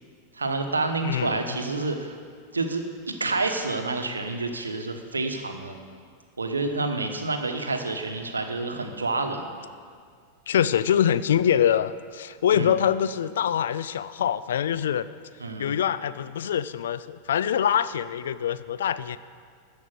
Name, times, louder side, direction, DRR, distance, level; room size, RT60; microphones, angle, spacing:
voice 1, 0.3-2.1 2.5-5.8 6.4-9.4 12.5-12.8 15.4-15.8, right 3 dB, 75° right, 5 dB, 1.1 m, -28 dB
voice 2, 1.0-1.6 10.5-15.1 15.6-19.2, left 9 dB, 60° left, 15 dB, 0.4 m, -24 dB
13.5 x 5.2 x 7.7 m, 2.1 s
figure-of-eight pair, 90°, 0 cm